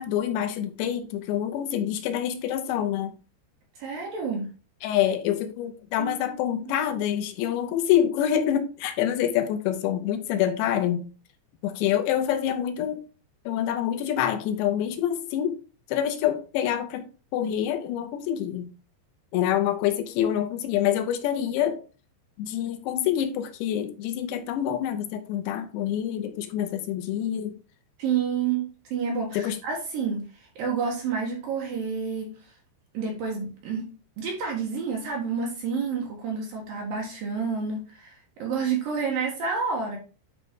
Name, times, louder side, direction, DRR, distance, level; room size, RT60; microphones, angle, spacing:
voice 1, 0.0-3.1 4.8-11.1 11.6-13.0 13.5-15.6 15.9-17.1 17.3-18.7 19.3-21.8 22.4-27.5 29.3-29.6, left 10 dB, 80° left, 7 dB, 2.9 m, -26 dB
voice 2, 3.8-4.5 6.0-6.4 28.0-32.3 32.9-33.9 34.2-40.0, right 5 dB, 65° right, 0 dB, 2.6 m, -29 dB
9.5 x 4.0 x 3.6 m, 0.34 s
omnidirectional pair, 5.2 m